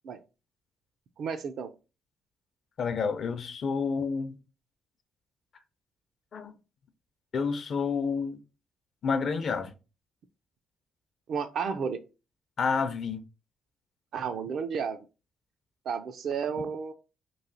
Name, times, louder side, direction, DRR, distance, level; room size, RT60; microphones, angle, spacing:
voice 1, 1.2-1.7 11.3-12.0 14.1-15.0 15.9-16.9, right 6 dB, 65° right, 0.5 m, -32 dB
voice 2, 2.8-4.4 6.3-6.5 7.3-8.4 9.0-9.7 12.6-13.2, left 5 dB, 55° left, 0.6 m, -29 dB
3.1 x 2.7 x 3.9 m
cardioid pair, 90°, 0 cm